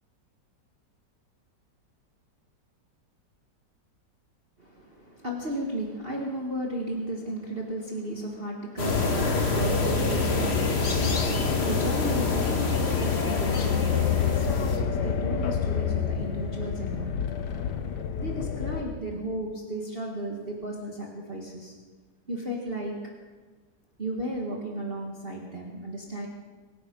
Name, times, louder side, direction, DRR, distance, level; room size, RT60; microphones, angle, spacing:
voice 1, 4.6-17.1 18.2-21.7 22.3-22.9 24.0-26.3, right 1 dB, 35° right, -1 dB, 1.8 m, -34 dB
sound 1, 8.8-14.8, left 2 dB, 35° left, 1.7 m, -28 dB
sound 2, 8.9-18.8, left 7 dB, 70° left, 1.5 m, -28 dB
24.5 x 10.0 x 5.3 m, 1.3 s
omnidirectional pair, 1.9 m